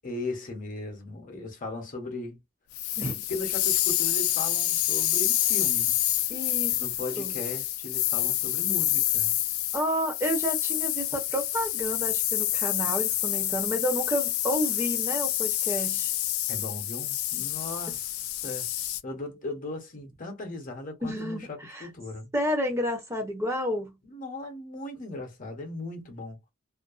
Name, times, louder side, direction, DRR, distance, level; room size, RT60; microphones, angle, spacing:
voice 1, 0.0-2.4 3.1-6.0 6.7-9.4 16.5-18.7 19.0-22.3 24.0-26.4, left 2 dB, 40° left, 0.9 m, -37 dB
sound 1, 2.7-19.0, left 14 dB, 80° left, 0.4 m, -28 dB
voice 2, 6.3-6.8 7.2-7.3 9.7-16.1 17.9-18.0 21.0-21.9 22.3-24.0, equal, 15° right, 0.8 m, -30 dB
2.5 x 2.2 x 2.4 m
head